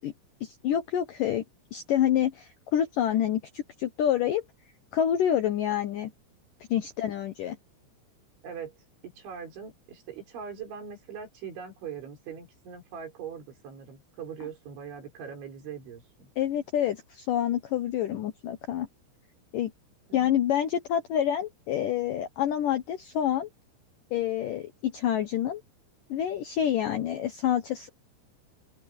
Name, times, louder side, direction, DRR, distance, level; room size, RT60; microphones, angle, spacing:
voice 1, 0.4-1.4 1.7-4.4 4.9-6.1 6.7-7.6 16.4-18.9 19.5-19.7 20.1-23.5 24.1-25.6 26.1-27.9, left 10 dB, 75° left, 2.0 m, -27 dB
voice 2, 8.4-8.8 9.0-16.3 20.1-20.4, right 7 dB, 80° right, 7.7 m, -41 dB
open air
omnidirectional pair, 5.3 m